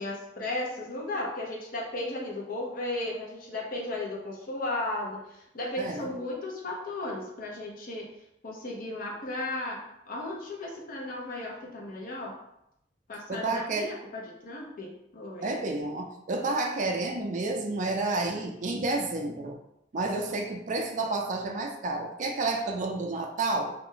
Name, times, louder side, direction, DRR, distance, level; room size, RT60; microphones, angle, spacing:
voice 1, 0.0-8.1 8.4-12.4 13.1-15.5, left 2 dB, 50° left, -1 dB, 0.6 m, -35 dB
voice 2, 5.8-6.1 13.3-13.9 15.4-19.6 19.9-23.7, right 2 dB, 45° right, 3 dB, 0.4 m, -30 dB
2.4 x 2.1 x 3.7 m, 0.79 s
head